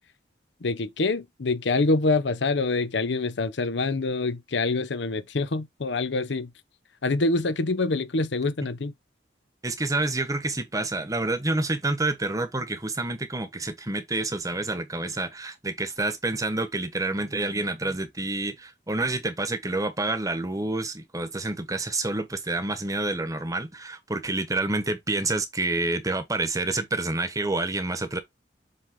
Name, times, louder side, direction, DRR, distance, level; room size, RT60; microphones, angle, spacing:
voice 1, 0.6-6.5 7.0-8.9, left 3 dB, 75° left, 0.7 m, -25 dB
voice 2, 9.6-28.2, right 2 dB, 20° right, 1.2 m, -28 dB
7.8 x 3.7 x 3.7 m
head